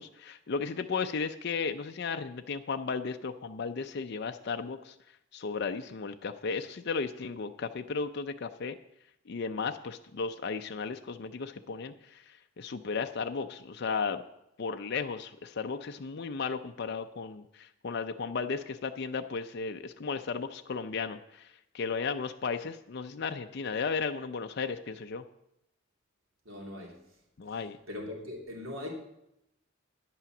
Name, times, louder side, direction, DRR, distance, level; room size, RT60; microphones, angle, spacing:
voice 1, 0.0-4.9 5.3-8.8 9.3-14.2 14.6-25.2 27.4-27.8, left 5 dB, 55° left, 6 dB, 0.5 m, -35 dB
voice 2, 26.4-26.9 27.9-28.9, left 1 dB, 90° right, 0 dB, 2.7 m, -40 dB
10.0 x 8.5 x 6.0 m, 0.83 s
head